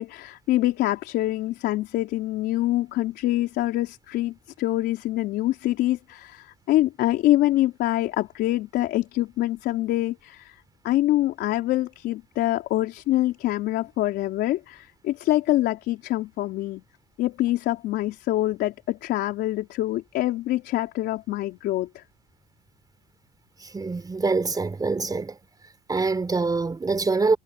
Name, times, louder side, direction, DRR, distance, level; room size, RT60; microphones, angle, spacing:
voice 1, 0.0-16.8 17.2-22.0, left 15 dB, 80° left, 4.0 m, -25 dB
voice 2, 23.6-25.4 25.9-27.4, right 4 dB, 20° right, 4.2 m, -25 dB
cardioid pair, 110°, 17 cm